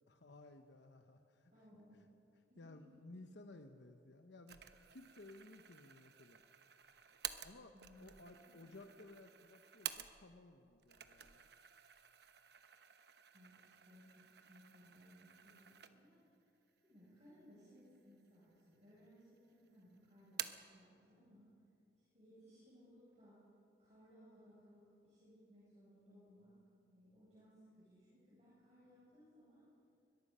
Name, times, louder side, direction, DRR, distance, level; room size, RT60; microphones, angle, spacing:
voice 1, 0.1-2.1 2.6-4.6 4.9-6.4 7.4-11.5, left 2 dB, 70° left, 6 dB, 1.0 m, -58 dB
voice 2, 1.5-2.0 2.5-2.9 7.7-8.7 13.3-16.2 16.8-21.5 22.0-23.4 23.8-26.5 26.9-29.6, equal, 35° right, -9 dB, 7.2 m, -64 dB
sound 1, 4.5-10.5 10.8-16.3 16.7-16.8 17.6-18.3 18.6-19.4 19.7-20.8, right 10 dB, 60° right, 0.9 m, -51 dB
22.5 x 22.0 x 5.6 m, 2.6 s
head